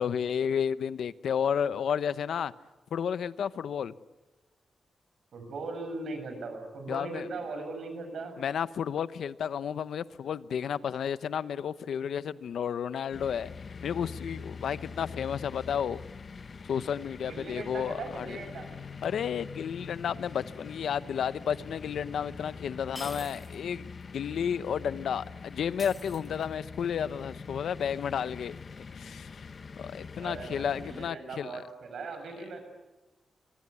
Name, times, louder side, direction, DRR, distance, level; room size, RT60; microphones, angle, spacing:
voice 1, 0.0-2.5 2.9-3.9 6.9-7.3 8.4-13.5 13.8-16.0 16.7-18.4 19.0-28.6 29.0-29.5 29.8-31.6, left 8 dB, 75° left, 0.8 m, -32 dB
voice 2, 5.3-8.4 17.3-18.7 30.2-32.6, right 3 dB, 60° right, 6.9 m, -39 dB
sound 1, 13.1-31.1, left 5 dB, 35° left, 0.8 m, -44 dB
sound 2, 21.5-21.6 22.9-23.7 24.0-24.1 25.8-26.7, left 2 dB, 15° left, 1.4 m, -45 dB
25.0 x 24.0 x 9.6 m
wide cardioid pair, 175°, 0 cm